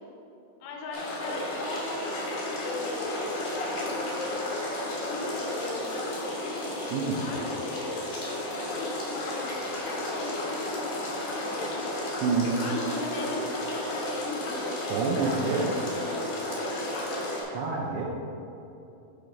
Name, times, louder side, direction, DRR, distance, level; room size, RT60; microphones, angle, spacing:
voice 1, 0.6-3.8 5.0-6.6 7.2-8.1 8.6-10.5 10.9-11.9 12.6-14.3 16.7-17.1, left 3 dB, 85° left, 1 dB, 3.3 m, -39 dB
sound 1, 0.9-17.4, left 1 dB, 65° left, 1.9 m, -32 dB
voice 2, 6.9-7.3 12.2-12.6 14.9-15.8 17.5-18.1, right 4 dB, 80° right, -2 dB, 2.6 m, -27 dB
7.7 x 4.6 x 5.1 m, 2.8 s
omnidirectional pair, 5.5 m